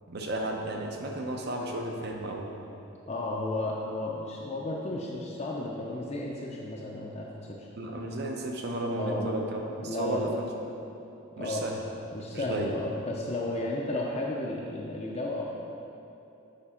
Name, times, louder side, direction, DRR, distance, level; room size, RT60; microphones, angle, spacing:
voice 1, 0.1-2.6 7.8-10.5 11.4-11.8 12.3-12.7, right 1 dB, 50° right, 1 dB, 0.7 m, -33 dB
voice 2, 3.1-7.7 9.0-9.3 9.8-10.4 11.4-11.7 12.1-15.6, left 2 dB, 30° left, -3 dB, 0.4 m, -33 dB
6.8 x 5.1 x 4.3 m, 2.9 s
head